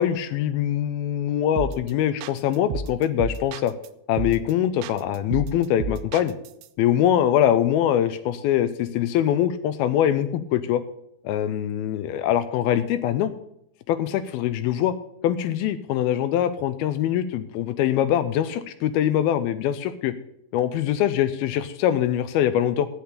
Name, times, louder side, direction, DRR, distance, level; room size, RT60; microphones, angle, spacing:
voice 1, 0.0-3.7 4.1-6.3 6.8-10.8 11.2-13.3 13.9-14.9 15.2-20.1 20.5-22.9, left 11 dB, 85° left, 11 dB, 2.2 m, -23 dB
sound 1, 1.6-1.9 2.2-3.9 4.2-4.5 4.8-6.7, right 6 dB, 85° right, 2.8 m, -32 dB
10.5 x 8.5 x 6.9 m, 0.78 s
omnidirectional pair, 4.9 m